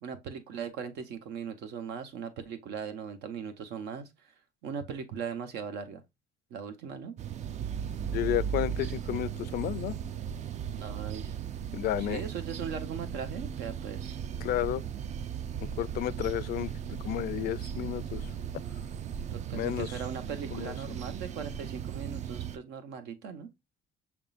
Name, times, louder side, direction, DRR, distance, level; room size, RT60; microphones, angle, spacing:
voice 1, 0.0-4.3 4.6-6.0 6.5-7.2 10.8-11.4 12.0-14.2 19.3-23.5, right 6 dB, 80° right, 1.0 m, -39 dB
sound 1, 7.2-22.6, right 8 dB, 45° right, 0.4 m, -37 dB
voice 2, 8.1-9.9 11.7-12.2 14.4-14.8 15.6-18.3 19.5-20.0 20.5-20.7, left 13 dB, 65° left, 0.4 m, -32 dB
5.9 x 3.6 x 2.4 m
cardioid pair, 110°, 17 cm